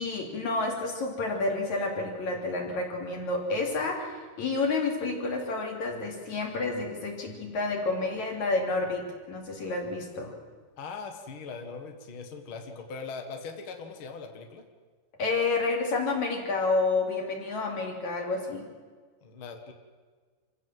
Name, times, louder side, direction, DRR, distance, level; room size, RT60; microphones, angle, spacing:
voice 1, 0.0-10.3 15.2-18.7, left 3 dB, 40° left, 1 dB, 4.2 m, -29 dB
voice 2, 10.8-14.6 19.2-19.7, left 4 dB, 75° left, 5 dB, 1.1 m, -40 dB
26.5 x 16.0 x 7.8 m, 1.5 s
omnidirectional pair, 5.3 m